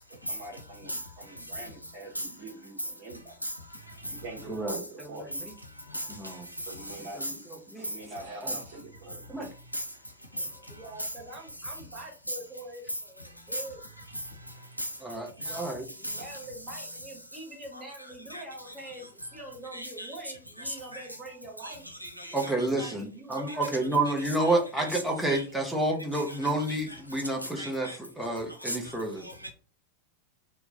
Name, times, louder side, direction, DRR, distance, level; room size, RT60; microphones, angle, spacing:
voice 1, 0.3-3.4 4.1-5.4 6.7-7.4 7.8-9.3, right 2 dB, 40° right, 1.0 m, -44 dB
voice 2, 4.5-5.1 6.2-6.4 7.1-7.3 7.7-7.9 8.4-8.6 9.3-9.5 15.0-15.8 22.3-27.9 28.2-29.2, right 2 dB, ahead, 0.9 m, -29 dB
voice 3, 10.3-13.8 15.4-21.8 22.6-23.9, right 2 dB, 20° right, 1.5 m, -44 dB
voice 4, 19.7-20.1 20.7-21.0 21.6-21.8 22.0-22.5 22.8-22.9 24.4-24.5 24.9-25.0 25.3-25.4 27.6-28.0 28.6-28.8, equal, 90° right, 0.7 m, -35 dB
2.9 x 2.2 x 3.8 m
figure-of-eight pair, 90°, 0 cm